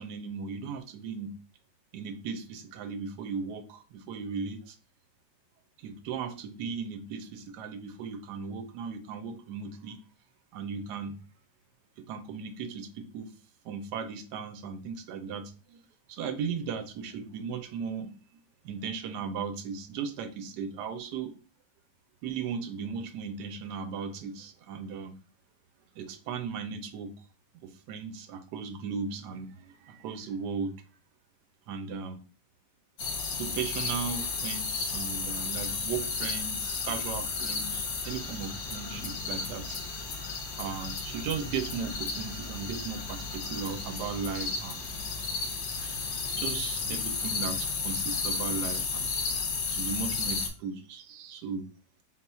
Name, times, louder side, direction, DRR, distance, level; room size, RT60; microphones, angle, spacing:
voice 1, 0.0-1.4 1.9-4.8 5.8-10.0 10.5-11.2 12.0-13.3 13.6-15.8 16.1-18.1 18.6-21.3 22.2-25.1 25.9-27.1 27.6-30.7 31.7-32.2 33.4-40.0 40.5-44.8 45.7-46.0 46.4-49.1 49.7-51.7, right 6 dB, 75° right, 8 dB, 1.1 m, -37 dB
sound 1, 33.0-50.5, left 4 dB, 90° left, 1.6 m, -33 dB
4.0 x 2.3 x 4.1 m, 0.35 s
omnidirectional pair, 1.9 m